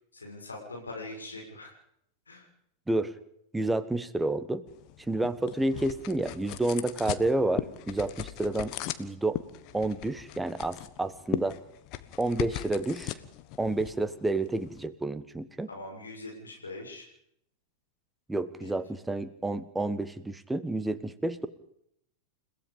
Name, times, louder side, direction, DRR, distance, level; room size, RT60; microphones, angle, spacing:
voice 1, 0.1-1.7 2.3-2.5 15.7-17.1 18.6-18.7, left 2 dB, 75° left, 0 dB, 7.1 m, -42 dB
voice 2, 3.5-4.6 5.1-8.7 9.0-9.4 9.7-11.6 12.2-13.2 13.6-15.7 18.3-21.5, right 2 dB, 5° right, 13 dB, 1.4 m, -30 dB
sound 1, 4.7-14.9, left 14 dB, 40° left, 1.3 m, -39 dB
30.0 x 17.0 x 5.3 m, 0.72 s
figure-of-eight pair, 90°, 0 cm